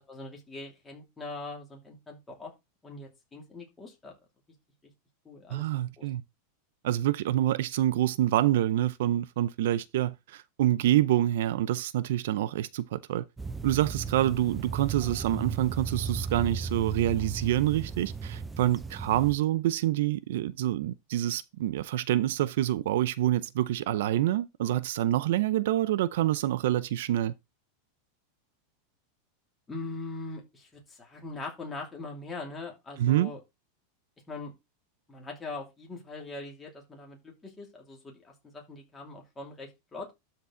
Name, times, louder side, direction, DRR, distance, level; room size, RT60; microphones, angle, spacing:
voice 1, 0.1-2.5 2.8-4.1 5.2-5.6 6.0-6.1 29.7-33.4 34.3-34.5 35.1-40.1, left 3 dB, 10° left, 2.7 m, -41 dB
voice 2, 5.5-6.2 6.8-13.3 13.6-27.3 33.0-33.3, right 13 dB, 65° right, 0.5 m, -27 dB
sound 1, 13.4-19.4, right 5 dB, 10° right, 0.5 m, -35 dB
12.5 x 4.5 x 3.8 m
supercardioid pair, 165°, 0 cm